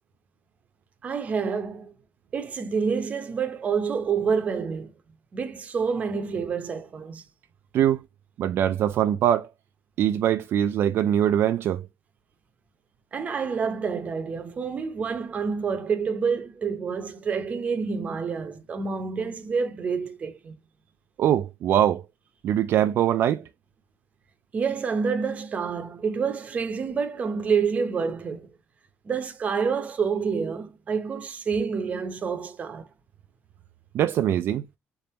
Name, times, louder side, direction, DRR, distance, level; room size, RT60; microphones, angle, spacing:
voice 1, 1.0-1.9 2.3-4.9 5.3-7.2 13.1-20.5 24.5-28.5 29.0-32.9, right 5 dB, 30° right, 0.8 m, -28 dB
voice 2, 8.4-9.5 10.0-11.9 21.2-22.0 22.4-23.4 33.9-34.7, right 10 dB, 55° right, 0.3 m, -22 dB
4.0 x 3.4 x 2.8 m
cardioid pair, 175°, 5 cm